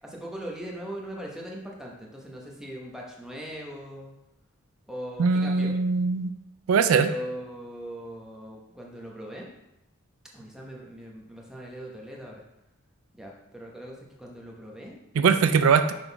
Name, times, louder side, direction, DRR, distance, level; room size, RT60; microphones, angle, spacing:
voice 1, 0.0-4.1 4.9-5.7 6.9-9.5 10.3-12.4 13.1-15.0 15.3-15.5, equal, 5° right, -2 dB, 0.9 m, -40 dB
voice 2, 5.2-6.3 6.7-7.1 15.2-15.9, right 5 dB, 70° right, 10 dB, 0.4 m, -21 dB
5.9 x 3.8 x 4.5 m, 0.90 s
head